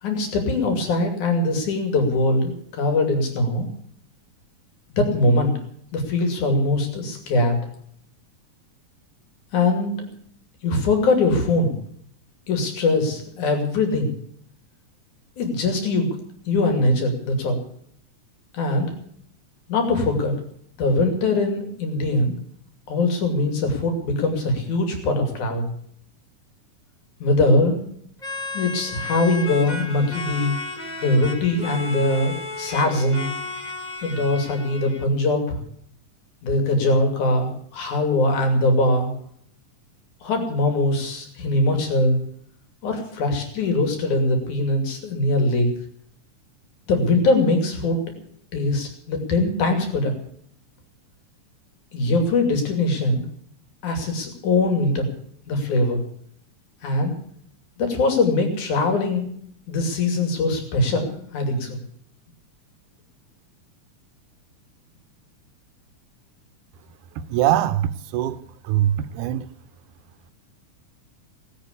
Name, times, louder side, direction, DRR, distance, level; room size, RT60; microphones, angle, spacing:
voice 1, 0.0-3.7 5.0-5.5 5.9-7.6 9.5-10.1 10.6-11.8 12.5-14.1 15.4-16.1 16.5-17.6 18.5-18.9 19.7-20.3 20.8-22.3 22.9-25.7 27.2-27.8 28.5-30.6 31.0-33.3 34.0-35.6 36.4-39.1 40.2-42.2 42.8-45.7 46.9-48.0 48.5-50.2 51.9-53.2 53.8-55.1 55.5-56.0 56.8-57.1 57.8-59.3 59.7-61.8, left 2 dB, 70° left, 4.2 m, -22 dB
sound 1, 28.2-35.0, left 3 dB, 25° left, 1.0 m, -33 dB
voice 2, 67.3-68.4 68.7-69.4, right 12 dB, 80° right, 2.3 m, -22 dB
19.0 x 8.5 x 8.4 m
omnidirectional pair, 3.6 m